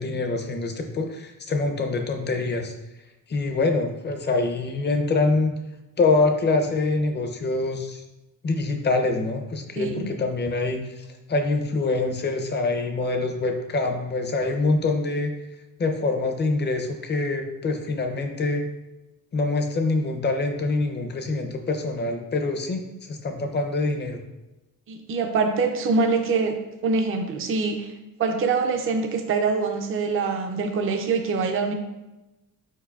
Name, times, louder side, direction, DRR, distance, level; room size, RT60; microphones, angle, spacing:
voice 1, 0.0-2.7 3.3-5.5 6.0-8.0 8.4-15.3 15.8-18.7 19.3-22.8 23.1-24.2, left 3 dB, 30° left, 4 dB, 0.5 m, -25 dB
voice 2, 9.8-10.1 24.9-26.6 26.8-27.9 28.2-31.7, right 4 dB, 40° right, 5 dB, 0.5 m, -24 dB
4.8 x 4.7 x 2.3 m, 1.0 s
wide cardioid pair, 145°, 35 cm